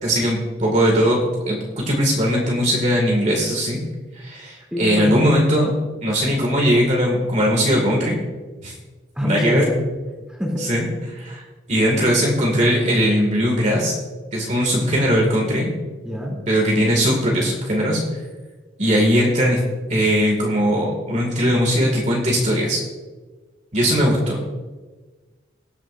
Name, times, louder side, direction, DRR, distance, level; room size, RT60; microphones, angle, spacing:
voice 1, 0.0-3.8 4.1-5.7 6.0-8.2 8.6-8.7 9.2-9.6 10.6-11.4 11.7-13.9 14.3-15.7 16.5-18.0 18.8-19.6 19.9-22.8 23.7-24.4, equal, 40° right, -1 dB, 2.1 m, -19 dB
voice 2, 4.7-5.3 9.1-9.8 10.4-10.6 16.0-16.4, left 1 dB, 5° right, -2 dB, 3.0 m, -24 dB
19.5 x 9.0 x 2.6 m, 1.3 s
head